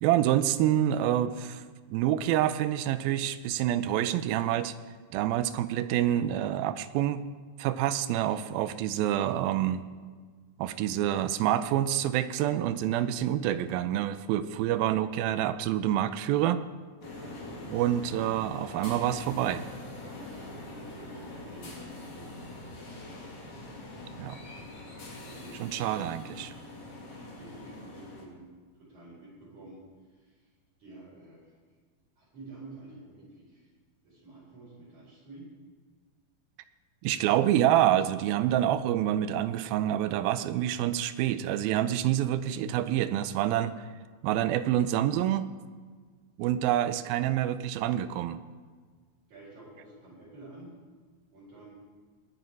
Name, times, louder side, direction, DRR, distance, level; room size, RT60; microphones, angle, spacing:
voice 1, 0.0-1.6 1.9-4.7 5.1-7.2 7.6-9.9 10.6-16.6 17.7-19.6 24.2-24.4 25.6-26.5 37.0-43.8 44.2-45.5 46.4-48.4, right 12 dB, 85° right, 13 dB, 2.4 m, -27 dB
Platform Tube Train Arrive Announcement, 17.0-28.2, left 2 dB, 55° left, 3.9 m, -43 dB
voice 2, 20.1-23.0 25.3-26.0 27.2-28.5 28.8-29.8 30.1-30.4 30.8-31.5 32.2-33.7 34.0-35.5 49.3-50.7 51.3-51.7, right 2 dB, 50° right, -8 dB, 6.2 m, -50 dB
20.0 x 9.4 x 4.7 m, 1.5 s
omnidirectional pair, 4.2 m